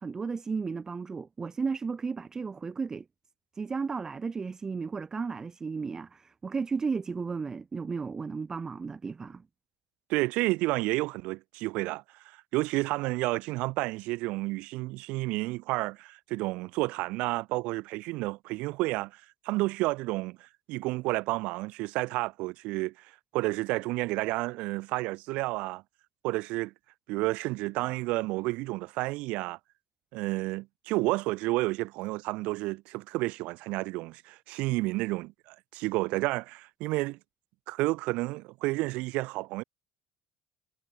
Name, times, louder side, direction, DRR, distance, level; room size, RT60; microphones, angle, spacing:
voice 1, 0.0-3.0 3.5-9.4, right 5 dB, 30° right, 3.1 m, -34 dB
voice 2, 10.1-25.8 26.2-26.7 27.1-29.6 30.1-37.2 37.7-39.6, right 22 dB, 70° right, 0.9 m, -31 dB
supercardioid pair, 80°, 2 cm